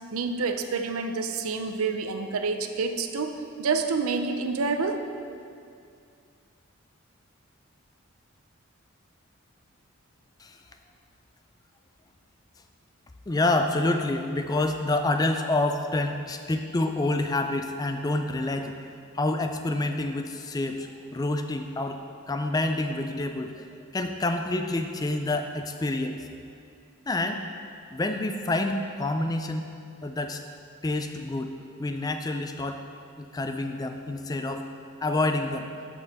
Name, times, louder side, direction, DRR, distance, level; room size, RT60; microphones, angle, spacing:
voice 1, 0.1-5.1, right 4 dB, 85° right, 7 dB, 0.6 m, -28 dB
voice 2, 13.3-18.8 19.1-22.0 22.3-26.2 27.1-27.4 27.9-29.7 30.0-30.4 30.8-31.5 31.8-32.8 33.2-34.6 35.0-35.7, left 2 dB, 15° left, 6 dB, 0.3 m, -28 dB
6.7 x 5.4 x 6.3 m, 2.4 s
head